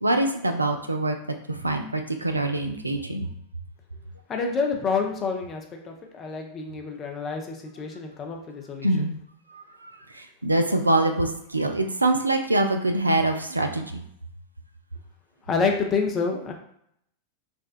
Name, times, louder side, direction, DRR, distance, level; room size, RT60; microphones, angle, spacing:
voice 1, 0.0-1.2 1.5-3.3 8.8-9.2 9.5-14.0, right 2 dB, 80° right, 5 dB, 0.3 m, -24 dB
voice 2, 4.3-8.9 15.5-16.5, left 5 dB, 25° left, 2 dB, 0.6 m, -28 dB
3.4 x 2.2 x 2.5 m, 0.71 s
figure-of-eight pair, 90°, 0 cm